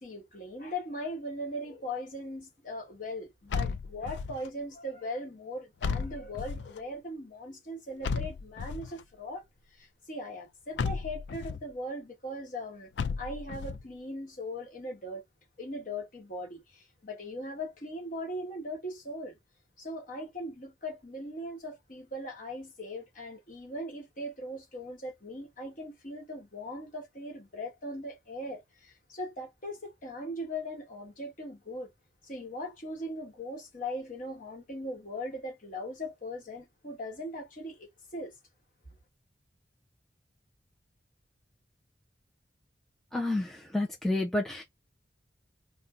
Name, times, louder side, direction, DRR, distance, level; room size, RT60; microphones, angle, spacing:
voice 1, 0.0-9.4 9.7-12.9 13.2-15.2 15.6-19.4 19.8-31.9 32.2-37.9 38.1-38.3, left 1 dB, 45° left, 1.3 m, -39 dB
sound 1, 3.5-4.5 5.8-6.8 8.0-9.0 10.8-11.6 13.0-13.8, left 5 dB, 75° left, 0.4 m, -34 dB
voice 2, 43.1-44.6, left 2 dB, ahead, 0.4 m, -30 dB
2.6 x 2.1 x 3.6 m
head